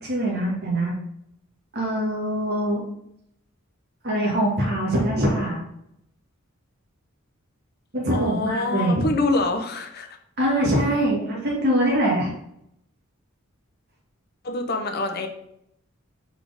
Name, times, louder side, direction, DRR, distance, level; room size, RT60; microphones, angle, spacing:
voice 1, 0.0-0.9 1.7-2.8 4.0-5.6 7.9-9.1 10.4-12.3, right 1 dB, 50° right, -3 dB, 1.9 m, -23 dB
voice 2, 8.1-10.1 14.4-15.3, left 2 dB, 50° left, 5 dB, 0.8 m, -25 dB
4.7 x 4.3 x 5.1 m, 0.76 s
head